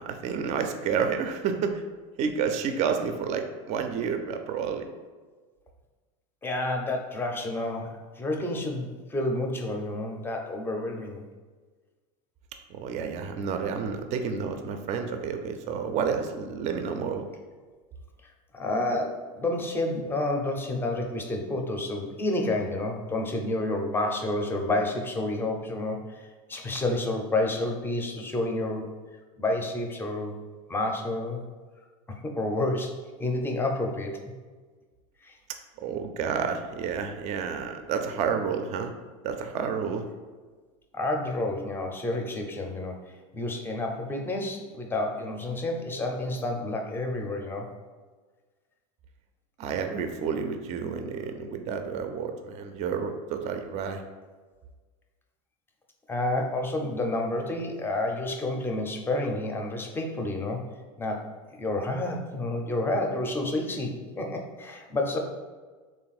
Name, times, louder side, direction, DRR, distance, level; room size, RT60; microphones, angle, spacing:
voice 1, 0.0-1.8 2.2-4.8 12.7-17.2 35.8-38.9 39.2-40.0 49.6-54.0, right 6 dB, 40° right, 6 dB, 0.4 m, -30 dB
voice 2, 6.4-11.3 18.5-28.9 29.4-30.3 30.7-31.4 32.1-34.2 35.2-35.4 40.9-47.7 56.1-60.6 61.0-65.2, left 2 dB, 10° left, 2 dB, 0.5 m, -30 dB
3.4 x 2.5 x 4.0 m, 1.4 s
supercardioid pair, 110°, 18 cm